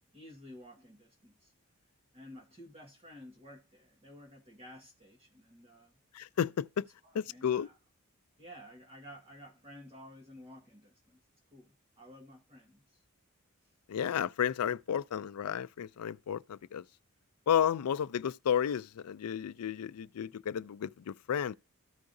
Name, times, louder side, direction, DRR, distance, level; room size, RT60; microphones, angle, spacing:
voice 1, 0.1-1.5 2.1-6.0 7.0-7.8 8.4-11.2 11.5-13.0 13.6-13.7, equal, 25° right, 1.4 m, -53 dB
voice 2, 6.1-6.8 7.1-7.7 13.9-16.8 17.5-21.5, left 8 dB, 90° left, 0.4 m, -32 dB
14.0 x 4.7 x 2.6 m
head